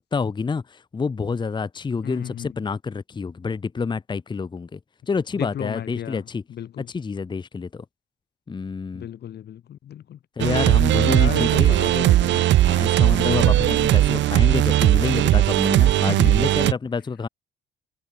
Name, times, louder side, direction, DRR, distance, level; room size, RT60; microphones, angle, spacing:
voice 1, 0.0-4.8 5.1-6.4 6.9-7.8 8.5-9.1 10.4-11.8 12.6-17.3, left 5 dB, 25° left, 0.7 m, -28 dB
voice 2, 2.0-2.6 5.3-6.9 8.9-10.2 11.0-12.5 13.2-13.9 16.1-16.3, left 10 dB, 55° left, 0.8 m, -34 dB
sound 1, 10.4-16.7, right 14 dB, 70° right, 0.5 m, -18 dB
cardioid pair, 90°, 20 cm